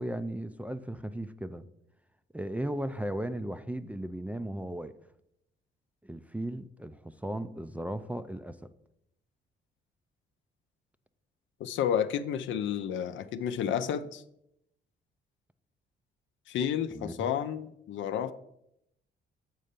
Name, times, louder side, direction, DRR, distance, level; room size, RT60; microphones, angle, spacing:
voice 1, 0.0-1.6 2.3-4.9 6.0-8.7 16.9-17.3, right 1 dB, 5° right, 11 dB, 0.3 m, -36 dB
voice 2, 11.6-14.2 16.5-18.3, left 9 dB, 75° left, 11 dB, 0.5 m, -31 dB
7.6 x 4.3 x 5.1 m, 0.79 s
cardioid pair, 90°, 20 cm